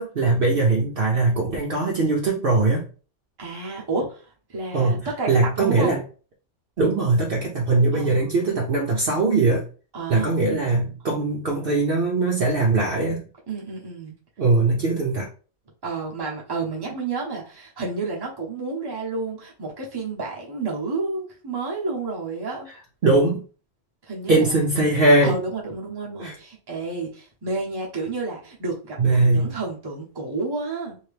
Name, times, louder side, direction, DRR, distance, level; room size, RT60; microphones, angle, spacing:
voice 1, 0.0-2.9 4.7-6.0 6.8-9.6 10.1-13.3 14.4-15.3 23.0-23.4 24.3-25.4 26.2-26.3 29.0-29.5, right 3 dB, 55° right, -1 dB, 0.7 m, -21 dB
voice 2, 3.4-5.3 5.6-5.9 7.9-8.4 9.9-11.0 13.5-14.1 15.8-22.7 24.1-24.7 25.2-31.0, right 3 dB, 20° right, -3 dB, 0.8 m, -31 dB
2.8 x 2.7 x 3.3 m, 0.38 s
omnidirectional pair, 1.3 m